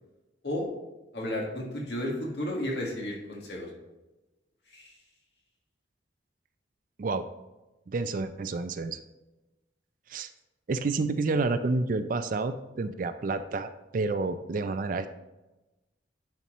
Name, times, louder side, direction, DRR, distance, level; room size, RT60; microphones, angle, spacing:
voice 1, 1.1-3.7 4.7-5.0, left 1 dB, 60° left, -2 dB, 1.8 m, -33 dB
voice 2, 7.9-9.0 10.1-10.3 10.7-15.1, right 3 dB, 45° right, 10 dB, 0.4 m, -29 dB
10.5 x 4.3 x 3.1 m, 1.0 s
head